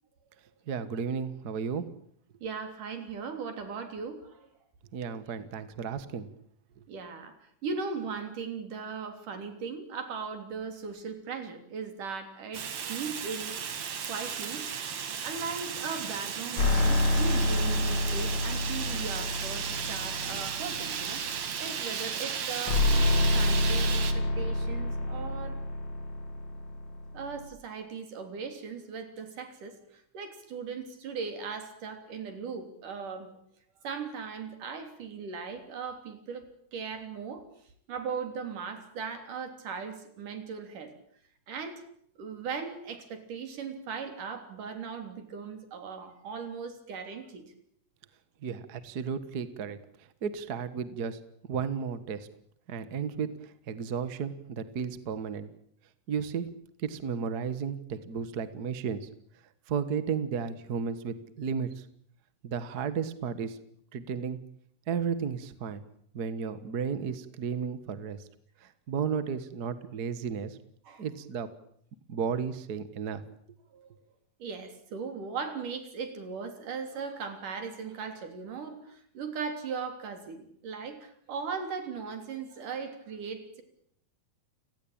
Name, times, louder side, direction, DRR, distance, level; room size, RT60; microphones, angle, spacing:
voice 1, 0.7-1.8 4.9-6.3 48.4-49.8 50.2-51.2 51.5-52.3 52.7-53.3 53.7-55.5 56.1-56.5 56.8-59.1 59.7-61.7 62.4-63.6 63.9-64.4 64.9-65.8 66.1-68.2 68.9-70.6 71.0-71.5 72.1-73.2, right 6 dB, 45° right, 13 dB, 1.4 m, -33 dB
voice 2, 2.4-4.5 6.9-13.5 14.1-14.6 15.2-21.2 21.6-22.9 23.3-25.6 27.1-29.8 30.1-33.3 33.8-36.5 36.7-37.4 37.9-40.9 41.5-41.8 42.2-47.5 70.8-71.1 73.7-73.9 74.4-83.6, right 5 dB, 75° right, 7 dB, 4.9 m, -38 dB
Fire, 12.5-24.1, right 7 dB, 60° right, 3.2 m, -35 dB
sound 1, 16.6-21.1 22.7-27.4, left 1 dB, 60° left, 4.1 m, -28 dB
29.5 x 18.0 x 8.9 m, 0.68 s
omnidirectional pair, 3.7 m